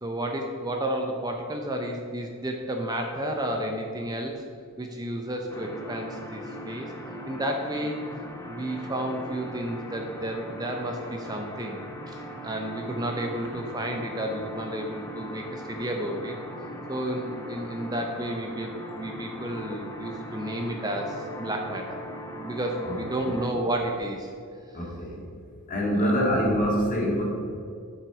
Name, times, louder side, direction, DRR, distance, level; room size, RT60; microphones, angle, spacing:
voice 1, 0.0-4.4 4.8-6.9 7.3-8.1 8.4-11.8 12.1-12.2 12.4-16.4 16.9-22.0 22.4-24.3 25.9-26.3, right 1 dB, 20° right, 2 dB, 0.7 m, -31 dB
sound 1, 5.5-23.5, equal, 15° left, 0.9 m, -39 dB
voice 2, 24.7-25.2 25.7-27.2, equal, 40° left, -3 dB, 2.2 m, -25 dB
9.9 x 6.1 x 4.9 m, 2.4 s
head